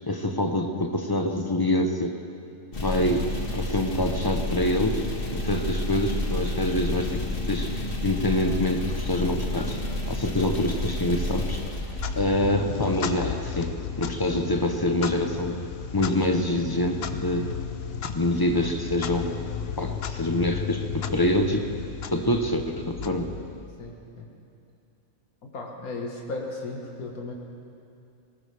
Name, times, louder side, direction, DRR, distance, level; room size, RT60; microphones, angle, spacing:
voice 1, 0.1-2.1 2.8-3.2 3.5-5.1 5.3-9.8 10.1-11.6 12.2-15.6 15.9-17.5 18.0-19.4 19.8-21.7 22.1-23.3, left 1 dB, 20° left, 4 dB, 0.6 m, -26 dB
sound 1, 2.7-12.6, left 1 dB, 40° left, 1.5 m, -30 dB
Clock, 11.8-23.8, left 7 dB, 55° left, 0.8 m, -34 dB
voice 2, 23.8-24.3 25.4-27.3, left 2 dB, 70° left, -1 dB, 2.0 m, -36 dB
19.5 x 18.5 x 3.4 m, 2.5 s
omnidirectional pair, 1.5 m